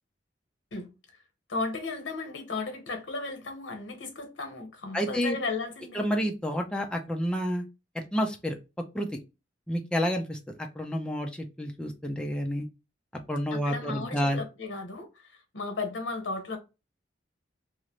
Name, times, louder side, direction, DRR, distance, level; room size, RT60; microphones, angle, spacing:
voice 1, 1.5-6.1 13.5-16.6, left 3 dB, 90° left, 0.8 m, -35 dB
voice 2, 4.9-5.4 5.9-7.6 8.1-8.6 8.9-9.1 9.7-12.7 13.3-14.4, equal, 5° left, 0.3 m, -29 dB
2.5 x 2.0 x 2.9 m
head